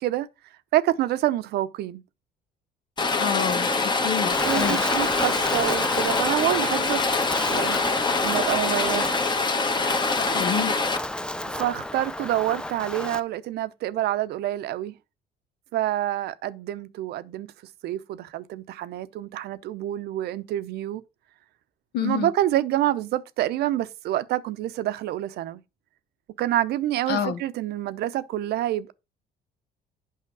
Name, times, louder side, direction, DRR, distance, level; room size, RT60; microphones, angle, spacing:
voice 1, 0.7-2.0 4.4-7.0 7.5-7.8 8.2-9.2 11.5-15.0 15.7-17.5 17.8-21.0 22.0-25.6 26.4-28.9, right 13 dB, 75° right, 0.7 m, -27 dB
Rain, 3.0-11.0, left 3 dB, 25° left, 1.2 m, -24 dB
voice 2, 3.2-4.8 10.3-10.7 21.9-22.3 27.1-27.4, left 8 dB, 75° left, 1.3 m, -28 dB
Wind, 4.3-13.2, left 1 dB, 5° left, 0.5 m, -33 dB
8.4 x 5.7 x 4.7 m
cardioid pair, 110°, 17 cm